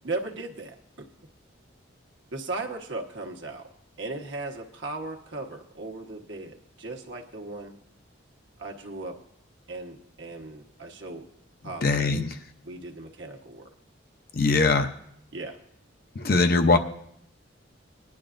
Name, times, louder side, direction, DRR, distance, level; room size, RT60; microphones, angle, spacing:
voice 1, 0.0-1.1 2.3-3.7 4.0-7.7 8.6-9.2 9.7-11.3 11.6-12.3 12.6-13.7 15.3-15.6, right 2 dB, 65° right, 2 dB, 1.2 m, -37 dB
voice 2, 11.8-12.3 14.3-14.9 16.2-16.8, left 3 dB, 50° left, 7 dB, 0.6 m, -21 dB
20.5 x 10.5 x 2.5 m, 0.72 s
head